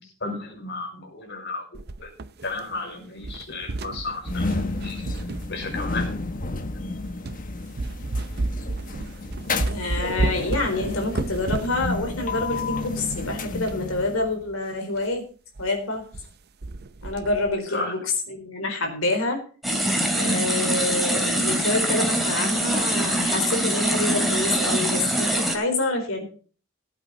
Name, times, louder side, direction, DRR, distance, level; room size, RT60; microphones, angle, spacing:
voice 1, 0.0-2.1 2.4-5.0 5.5-6.1 17.7-17.9, left 3 dB, 60° left, 2 dB, 5.8 m, -33 dB
sound 1, 1.7-2.9 3.2-6.2 6.8-6.9 7.2-7.4 7.8-13.8 14.1-14.2 14.5-14.6 15.0-15.1 15.6-15.7 15.9-16.3 16.6-17.6, right 2 dB, 50° right, 0.7 m, -32 dB
sound 2, 4.2-14.4, left 3 dB, 40° left, 1.3 m, -31 dB
voice 2, 9.6-15.2 15.6-16.0 17.0-18.0 18.3-19.4 20.1-26.2, left 2 dB, 80° left, 4 dB, 4.1 m, -27 dB
sound 3, 19.6-25.6, right 1 dB, ahead, 2.6 m, -23 dB
16.5 x 8.9 x 4.0 m, 0.40 s
head